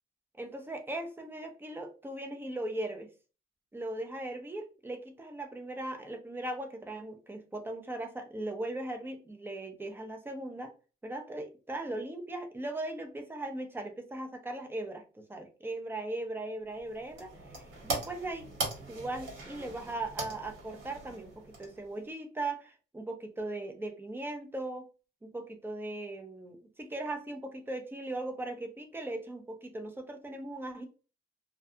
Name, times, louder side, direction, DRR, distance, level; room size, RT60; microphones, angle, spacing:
voice 1, 0.3-3.1 3.7-10.7 11.0-18.5 18.9-24.9 25.2-30.9, right 2 dB, 10° right, 4 dB, 0.6 m, -38 dB
sound 1, 16.7-22.1, right 2 dB, 75° right, 1.2 m, -40 dB
2.3 x 2.3 x 2.7 m, 0.34 s
cardioid pair, 90°, 20 cm